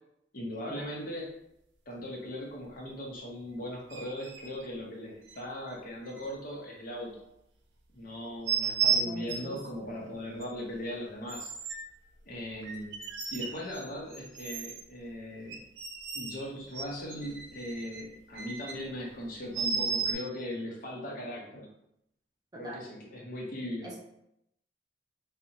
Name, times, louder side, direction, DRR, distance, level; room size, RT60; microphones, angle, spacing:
voice 1, 0.3-1.3 1.9-7.2 7.9-11.5 12.3-12.9 13.3-15.6 16.1-21.7 22.5-23.9, equal, 50° left, -2 dB, 0.6 m, -39 dB
sound 1, 3.9-4.5 5.3-5.4 6.2-6.3 8.5-9.6 10.4-10.5 11.3-11.8 12.6-13.8 14.1-14.8 15.5-16.4 16.7-18.7 19.5-20.1, right 6 dB, 85° right, 0.4 m, -33 dB
voice 2, 9.0-9.6 22.5-22.8 23.8-24.0, right 1 dB, 20° right, -3 dB, 0.4 m, -43 dB
2.6 x 2.0 x 2.7 m, 0.80 s
head